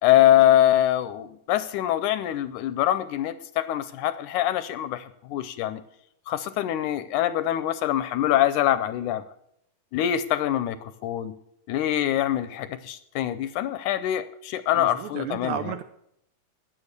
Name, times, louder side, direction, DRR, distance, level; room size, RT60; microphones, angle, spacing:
voice 1, 0.0-5.8 6.3-9.2 9.9-11.3 11.7-15.7, left 12 dB, 80° left, 13 dB, 1.9 m, -24 dB
voice 2, 14.7-15.8, right 9 dB, 75° right, 10 dB, 1.8 m, -33 dB
13.5 x 9.4 x 6.8 m, 0.76 s
omnidirectional pair, 3.8 m